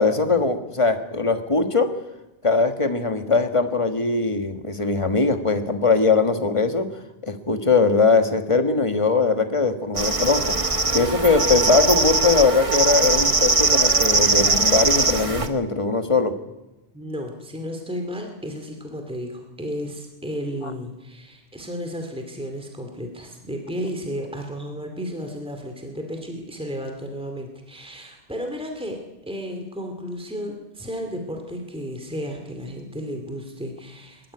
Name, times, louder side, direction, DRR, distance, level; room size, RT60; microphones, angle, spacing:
voice 1, 0.0-1.9 2.4-6.9 7.2-10.5 10.9-16.3, left 4 dB, 30° left, 7 dB, 1.5 m, -20 dB
sound 1, 10.0-15.5, right 3 dB, 35° right, 1.3 m, -20 dB
voice 2, 16.9-29.0 29.3-34.3, equal, 5° right, 4 dB, 2.4 m, -33 dB
21.0 x 12.5 x 9.9 m, 1.0 s
omnidirectional pair, 1.1 m